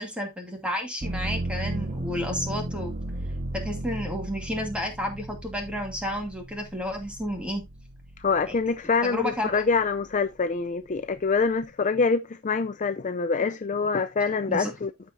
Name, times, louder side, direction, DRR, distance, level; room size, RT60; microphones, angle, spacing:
voice 1, 0.0-2.9 3.5-7.7 8.5-8.6 9.0-9.6 14.5-14.7, equal, 5° right, 2.4 m, -31 dB
sound 1, 1.0-8.8 9.3-10.1, right 1 dB, 35° right, 0.7 m, -35 dB
voice 2, 8.2-14.9, left 4 dB, 35° left, 0.4 m, -25 dB
14.0 x 4.8 x 2.7 m
head